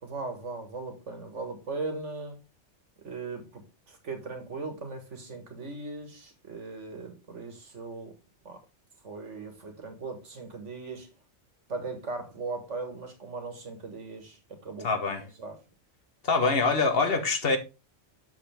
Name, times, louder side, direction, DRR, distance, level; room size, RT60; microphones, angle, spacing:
voice 1, 0.0-2.4 3.0-8.1 8.5-8.6 9.0-11.1 11.7-15.6, right 3 dB, 90° right, 2.0 m, -38 dB
voice 2, 14.8-15.2 16.2-17.6, left 4 dB, 55° left, 1.4 m, -24 dB
7.0 x 6.8 x 3.5 m
omnidirectional pair, 1.2 m